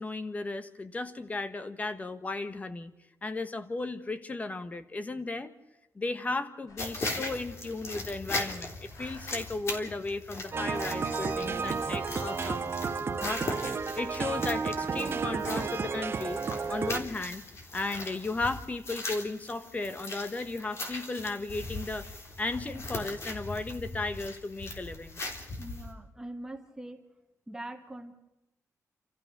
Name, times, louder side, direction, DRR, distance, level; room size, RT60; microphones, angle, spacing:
voice 1, 0.0-2.9 3.2-5.5 5.9-12.7 13.0-13.6 14.0-16.4 16.7-17.4 17.7-22.1 22.4-25.2, left 3 dB, 25° left, 11 dB, 1.4 m, -35 dB
sound 1, 6.7-7.0 7.4-7.5 7.7-8.5 8.9-9.6 10.1-12.0 12.5-13.3 13.6-14.5 15.1-16.0 16.3-17.1, left 2 dB, 70° left, 3.6 m, -56 dB
sound 2, 6.8-25.9, left 2 dB, 50° left, 3.6 m, -40 dB
sound 3, 10.5-17.0, right 5 dB, 40° right, 1.5 m, -32 dB
voice 2, 25.6-27.0 27.5-28.2, right 1 dB, 10° right, 4 dB, 1.6 m, -42 dB
29.5 x 14.5 x 6.8 m, 0.98 s
wide cardioid pair, 160°, 6 cm